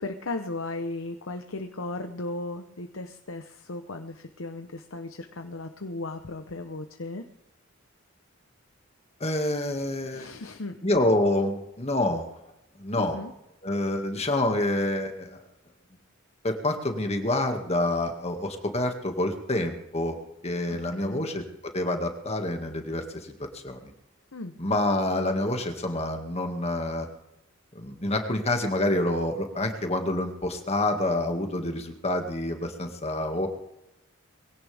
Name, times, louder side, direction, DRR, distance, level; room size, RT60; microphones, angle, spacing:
voice 1, 0.0-7.2 10.1-10.8 13.0-13.3 20.7-21.3 24.3-24.5, left 2 dB, 90° left, 7 dB, 1.0 m, -36 dB
voice 2, 9.2-10.3 10.8-12.3 12.8-13.2 13.6-15.4 16.4-20.2 20.4-21.4 21.7-23.9 24.6-27.1 27.8-33.5, left 1 dB, 30° left, 4 dB, 2.1 m, -27 dB
22.0 x 17.0 x 3.5 m, 0.88 s
head